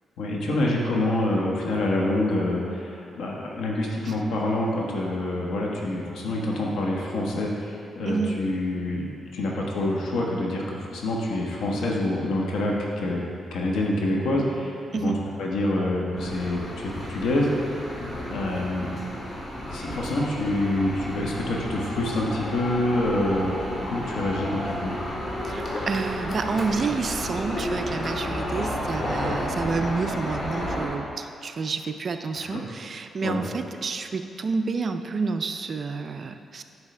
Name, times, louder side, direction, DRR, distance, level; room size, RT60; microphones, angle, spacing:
voice 1, 0.2-9.0 9.3-13.2 13.5-15.1 15.4-17.7 18.3-18.9 19.7-23.6 23.9-25.0 32.5-32.6 33.2-33.4, left 1 dB, 85° left, -2 dB, 1.2 m, -26 dB
voice 2, 8.1-8.4 14.9-15.2 25.4-36.6, right 4 dB, 50° right, 8 dB, 0.4 m, -29 dB
sound 1, 16.2-30.9, equal, 40° left, 1.7 m, -32 dB
9.5 x 6.2 x 3.3 m, 2.4 s
cardioid pair, 95°, 0 cm